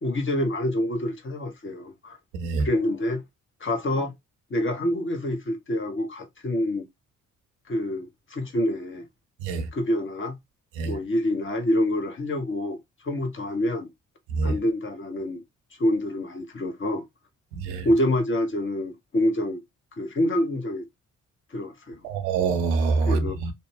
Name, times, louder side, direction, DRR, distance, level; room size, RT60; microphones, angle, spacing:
voice 1, 0.0-2.2 2.6-3.2 3.6-4.1 4.5-6.8 7.7-9.1 9.7-10.4 10.8-12.8 13.0-13.9 14.4-15.4 15.8-17.0 17.8-19.6 20.0-20.8 21.5-22.0 23.1-23.3, left 1 dB, 35° left, 1.0 m, -26 dB
voice 2, 2.3-2.7 9.4-9.7 10.8-10.9 14.3-14.5 17.6-17.9 22.0-23.5, right 4 dB, 80° right, 0.6 m, -25 dB
2.5 x 2.1 x 3.2 m
hypercardioid pair, 45°, 37 cm